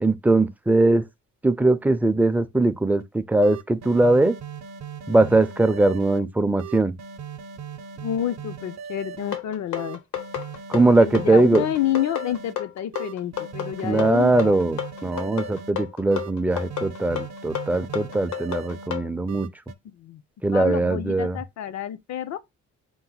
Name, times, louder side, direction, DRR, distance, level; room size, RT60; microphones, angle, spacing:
voice 1, 0.0-1.0 1.4-4.4 5.1-6.9 10.7-11.6 13.8-19.5 20.4-21.4, right 2 dB, 5° right, 0.4 m, -20 dB
sound 1, 3.0-3.1 3.4-6.2 6.6-9.4 9.8-12.5 12.9-15.7 16.1-18.9 19.3-19.7, right 7 dB, 60° right, 0.7 m, -38 dB
voice 2, 8.0-10.0 10.8-14.6 19.8-20.2 20.5-22.4, left 11 dB, 65° left, 0.6 m, -29 dB
sound 2, 9.3-19.1, left 11 dB, 80° left, 1.0 m, -31 dB
4.6 x 2.1 x 3.9 m
cardioid pair, 90°, 30 cm